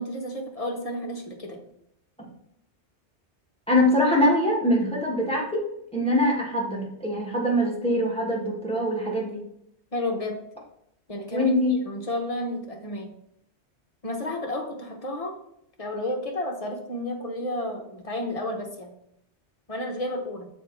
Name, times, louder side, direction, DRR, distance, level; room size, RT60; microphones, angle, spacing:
voice 1, 0.0-1.6 9.9-10.4 11.1-11.5 11.9-13.1 14.0-15.3 15.8-18.9 19.7-20.5, left 1 dB, 35° left, 2 dB, 1.0 m, -31 dB
voice 2, 3.7-5.6 5.9-9.4 11.3-11.7, left 1 dB, 5° left, -3 dB, 1.5 m, -23 dB
6.7 x 4.3 x 3.8 m, 0.75 s
omnidirectional pair, 1.2 m